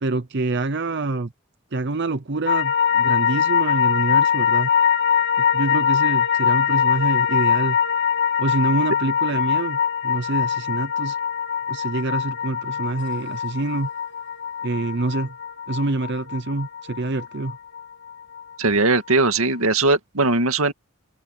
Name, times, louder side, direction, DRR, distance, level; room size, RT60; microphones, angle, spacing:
voice 1, 0.0-1.3 1.7-4.7 5.5-7.8 8.4-11.2 11.7-13.9 14.6-15.3 15.7-17.6, right 2 dB, 55° right, 0.7 m, -26 dB
sound 1, 2.5-18.8 19.1-19.2, left 8 dB, 55° left, 1.9 m, -22 dB
voice 2, 18.6-20.7, right 3 dB, 85° right, 2.1 m, -19 dB
open air
head